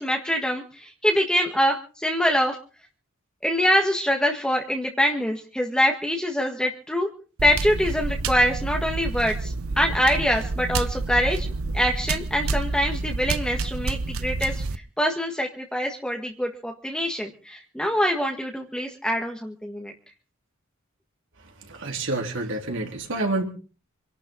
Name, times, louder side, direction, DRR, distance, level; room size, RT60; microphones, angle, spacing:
voice 1, 0.0-2.5 3.4-7.1 7.4-11.5 11.7-14.6 15.0-19.9, equal, 5° left, 1 dB, 1.7 m, -24 dB
sound 1, 7.4-14.8, right 3 dB, 80° right, 0.8 m, -29 dB
voice 2, 21.6-23.4, right 2 dB, 65° right, 2 dB, 3.6 m, -28 dB
27.0 x 12.0 x 3.9 m, 0.38 s
head